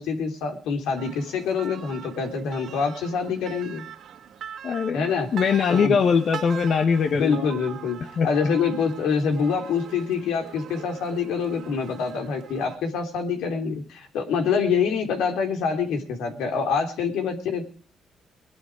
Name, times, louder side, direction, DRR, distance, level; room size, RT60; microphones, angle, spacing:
voice 1, 0.0-3.8 4.9-5.3 5.7-6.0 7.1-8.0 8.2-17.7, left 5 dB, 90° left, 5 dB, 3.3 m, -26 dB
sound 1, 1.0-12.8, right 9 dB, 70° right, 1.9 m, -41 dB
voice 2, 4.6-7.5 8.2-8.3, left 6 dB, 60° left, 7 dB, 1.4 m, -22 dB
19.5 x 11.5 x 4.9 m, 0.42 s
cardioid pair, 90°, 0 cm